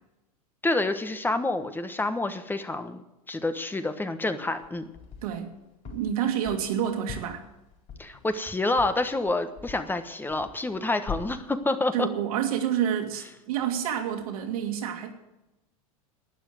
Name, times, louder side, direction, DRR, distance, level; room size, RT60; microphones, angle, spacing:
voice 1, 0.6-4.8 8.0-12.1, left 2 dB, 10° left, 9 dB, 1.2 m, -28 dB
sound 1, 4.4-5.4 5.9-10.0 10.3-10.8 11.1-11.6, left 6 dB, 35° left, 4.4 m, -41 dB
voice 2, 5.2-5.5 5.8-7.4 11.9-15.1, right 9 dB, 75° right, 4 dB, 2.6 m, -28 dB
12.0 x 9.6 x 8.0 m, 0.95 s
hypercardioid pair, 100°, 19 cm